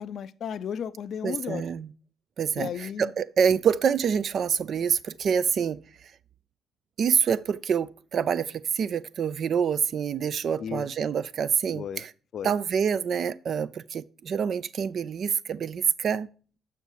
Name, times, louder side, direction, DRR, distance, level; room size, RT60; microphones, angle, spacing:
voice 1, 0.0-1.7 2.5-3.1 10.6-10.9 11.7-12.0 12.3-12.5, left 8 dB, 60° left, 0.4 m, -34 dB
voice 2, 1.2-1.9 2.4-5.8 7.0-12.1 12.4-16.3, right 7 dB, 55° right, 0.4 m, -26 dB
6.7 x 5.7 x 4.6 m
hypercardioid pair, 50°, 0 cm